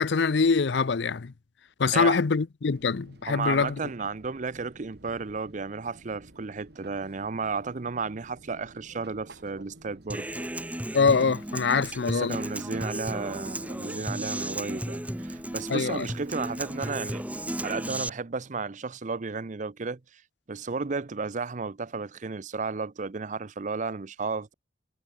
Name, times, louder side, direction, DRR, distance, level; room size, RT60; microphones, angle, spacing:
voice 1, 0.0-1.3 1.8-3.8 10.9-12.4 15.7-16.1, left 5 dB, 70° left, 0.6 m, -24 dB
Fixed-wing aircraft airplane, 2.7-18.1, right 1 dB, 60° right, 2.8 m, -52 dB
voice 2, 3.3-10.3 11.7-17.2 17.6-20.2 20.5-24.5, right 4 dB, 40° right, 0.6 m, -33 dB
Human voice / Acoustic guitar, 10.1-18.1, right 1 dB, 10° right, 1.8 m, -34 dB
head